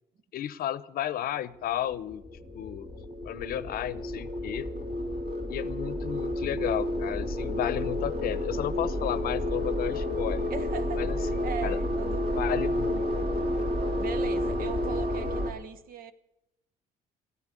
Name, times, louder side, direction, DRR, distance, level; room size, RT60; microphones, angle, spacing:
voice 1, 0.3-2.2 2.5-2.9 3.2-4.7 5.5-10.5 11.0-11.8 12.4-13.3, left 11 dB, 60° left, 16 dB, 0.8 m, -33 dB
sound 1, 1.6-15.4, left 4 dB, 20° left, 1.0 m, -45 dB
sound 2, 2.0-15.5, left 1 dB, 40° right, 3.7 m, -30 dB
voice 2, 10.5-12.3 14.0-16.1, right 7 dB, 60° right, 12 dB, 1.2 m, -39 dB
14.0 x 9.7 x 8.2 m, 0.86 s
cardioid pair, 110°, 17 cm